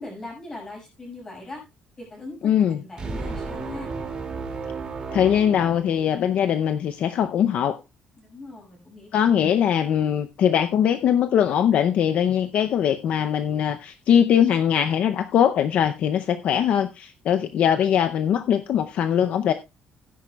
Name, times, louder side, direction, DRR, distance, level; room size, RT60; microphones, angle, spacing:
voice 1, 0.0-1.6 2.0-3.9 8.2-9.1, left 2 dB, 20° left, -1 dB, 5.8 m, -40 dB
voice 2, 2.4-2.8 5.1-7.8 9.1-19.5, left 9 dB, 50° left, 9 dB, 0.6 m, -21 dB
sound 1, 3.0-6.4, right 4 dB, 25° right, 2.3 m, -33 dB
16.0 x 10.0 x 2.3 m, 0.24 s
cardioid pair, 170°, 3 cm